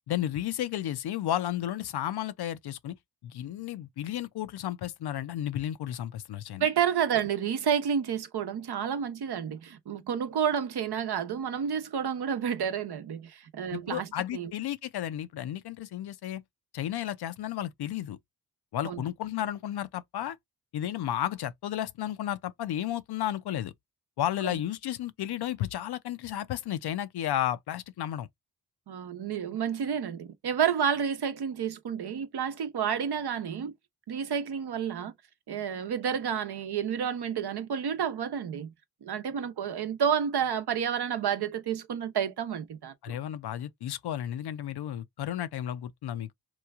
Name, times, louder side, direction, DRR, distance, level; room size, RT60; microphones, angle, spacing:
voice 1, 0.1-3.0 3.2-6.6 13.7-16.4 16.7-18.2 18.7-20.4 20.7-23.7 24.2-28.3 43.0-46.3, left 11 dB, 65° left, 0.5 m, -33 dB
voice 2, 6.6-14.5 18.8-19.0 24.4-24.6 28.9-33.7 34.1-35.1 35.5-38.7 39.0-43.2, right 8 dB, 65° right, 0.8 m, -30 dB
3.0 x 2.2 x 3.5 m
supercardioid pair, 40°, 43 cm